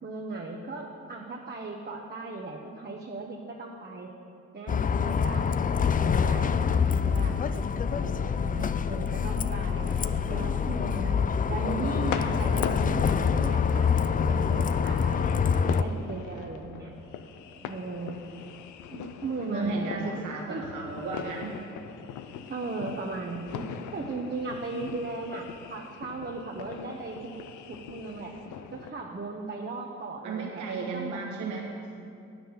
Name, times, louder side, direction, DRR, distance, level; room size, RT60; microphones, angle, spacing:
voice 1, 0.0-4.1 4.5-5.6 6.0-6.7 7.0-7.4 7.9-9.9 10.3-16.9 17.6-18.3 18.9-20.2 20.5-20.7 22.5-27.3 27.7-28.3 28.7-31.2, right 3 dB, 35° right, -1 dB, 1.1 m, -37 dB
Bus, 4.7-15.8, left 6 dB, 30° left, 0.4 m, -26 dB
sound 1, 11.9-28.9, left 8 dB, 90° left, 0.6 m, -41 dB
voice 2, 19.4-21.6 30.2-31.8, right 3 dB, 85° right, -1 dB, 1.3 m, -34 dB
9.1 x 6.1 x 7.0 m, 2.6 s
cardioid pair, 60°, 29 cm